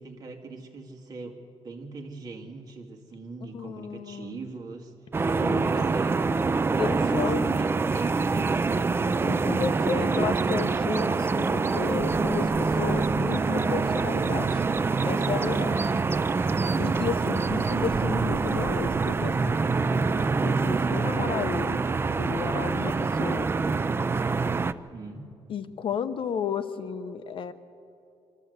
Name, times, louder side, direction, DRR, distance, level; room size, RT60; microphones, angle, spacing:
voice 1, 0.0-4.9 5.6-6.3 6.9-9.4 24.9-25.3, right 3 dB, 35° right, 3 dB, 2.2 m, -41 dB
voice 2, 3.5-4.4 5.4-5.9 6.8-7.5 9.2-14.6 15.0-15.9 16.8-19.7 20.4-21.9 22.2-23.5 25.5-27.5, left 7 dB, 55° left, 10 dB, 0.8 m, -33 dB
sound 1, 5.1-24.7, right 4 dB, 20° right, 0.4 m, -25 dB
24.0 x 14.0 x 8.0 m, 2.6 s
cardioid pair, 145°, 11 cm